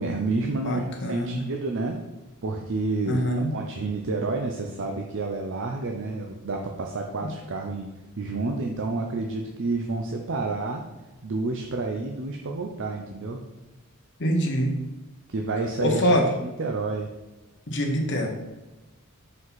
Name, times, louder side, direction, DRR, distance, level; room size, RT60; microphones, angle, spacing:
voice 1, 0.0-2.0 2.4-3.2 3.5-10.8 11.2-13.4 15.3-16.1 16.4-17.1, right 3 dB, 60° right, 2 dB, 0.6 m, -29 dB
voice 2, 0.6-1.5 3.0-3.5 7.2-7.3 14.2-14.8 15.8-16.2 17.7-18.3, equal, 55° left, 2 dB, 1.2 m, -24 dB
5.6 x 5.2 x 4.0 m, 1.1 s
head